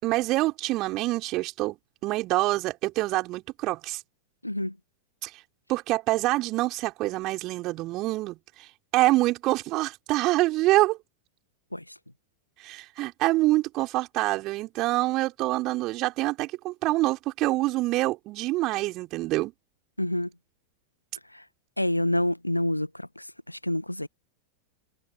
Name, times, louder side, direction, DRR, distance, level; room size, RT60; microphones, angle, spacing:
voice 1, 0.0-4.0 5.2-5.3 5.7-8.7 8.9-11.0 12.6-19.5, right 19 dB, 40° right, 5.8 m, -26 dB
voice 2, 4.4-4.7 11.7-11.8 20.0-20.3 21.3-21.4 21.8-24.1, left 1 dB, 85° left, 1.5 m, -28 dB
figure-of-eight pair, 90°, 0 cm